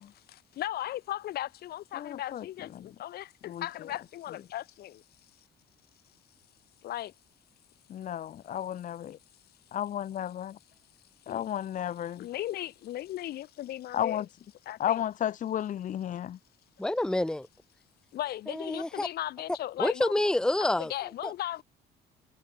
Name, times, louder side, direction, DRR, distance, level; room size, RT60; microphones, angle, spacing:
voice 1, 0.1-5.0 6.8-7.1 11.3-11.4 12.2-14.2 14.7-15.0 18.1-20.1 20.6-21.6, left 13 dB, 70° left, 3.0 m, -37 dB
voice 2, 2.0-2.5 2.7-2.9 3.5-3.7 7.9-9.2 9.7-10.6 11.3-12.3 13.9-14.2 14.8-16.4, left 10 dB, 50° left, 0.9 m, -33 dB
voice 3, 16.8-17.5 18.5-19.1 19.8-20.9 21.2-21.3, left 1 dB, 5° left, 0.8 m, -28 dB
cardioid pair, 110°, 17 cm